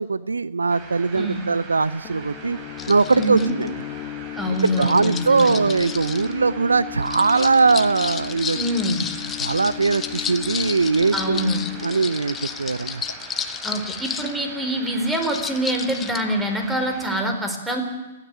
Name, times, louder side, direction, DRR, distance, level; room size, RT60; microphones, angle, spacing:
voice 1, 0.0-2.6 2.9-3.7 4.8-8.6 9.4-11.5 11.8-13.0, right 4 dB, 85° right, 18 dB, 0.6 m, -20 dB
sound 1, 0.7-17.2, right 4 dB, 30° right, 4.2 m, -42 dB
voice 2, 1.1-1.5 3.1-3.5 4.4-5.6 8.5-9.1 11.1-11.6 13.6-17.8, equal, 10° right, 5 dB, 4.1 m, -25 dB
sound 2, 2.0-13.6, left 15 dB, 35° left, 1.9 m, -37 dB
sound 3, 2.8-3.7 4.6-6.3 7.0-14.3 15.1-16.2, left 8 dB, 20° left, 1.2 m, -32 dB
29.5 x 10.0 x 9.7 m, 1.1 s
figure-of-eight pair, 120°, 0 cm